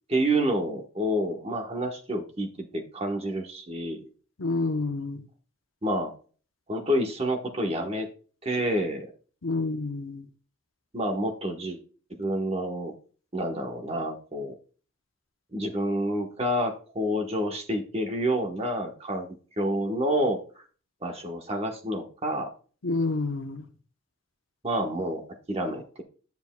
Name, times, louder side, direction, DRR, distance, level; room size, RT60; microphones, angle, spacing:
voice 1, 0.1-4.1 5.8-6.1 6.7-8.1 8.4-9.1 10.9-11.8 12.2-12.9 13.3-14.5 15.5-19.3 19.6-20.6 21.0-22.5 24.6-25.2 25.5-26.0, right 1 dB, 30° right, 3 dB, 1.1 m, -28 dB
voice 2, 4.4-5.2 9.4-10.3 22.8-23.6, left 3 dB, 80° left, 8 dB, 0.8 m, -28 dB
9.6 x 8.1 x 2.2 m, 0.39 s
head